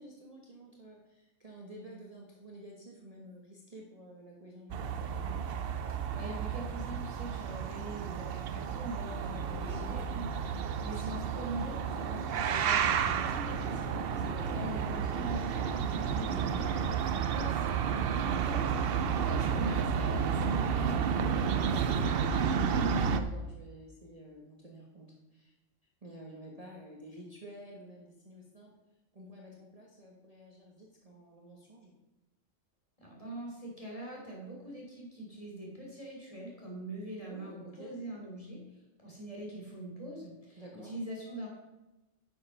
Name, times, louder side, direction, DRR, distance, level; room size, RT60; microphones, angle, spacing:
voice 1, 0.0-4.9 9.3-9.9 13.4-13.8 14.1-14.8 16.2-16.6 23.1-25.5 26.0-28.7 29.1-31.9 37.2-37.9 40.6-41.0, right 1 dB, 30° right, -2 dB, 1.3 m, -50 dB
sound 1, 4.7-23.2, right 7 dB, 60° right, 0.7 m, -31 dB
voice 2, 6.1-14.1 14.5-22.6 33.0-38.6 39.0-41.5, right 1 dB, 25° left, -3 dB, 3.2 m, -43 dB
9.9 x 6.6 x 5.5 m, 1.0 s
omnidirectional pair, 1.4 m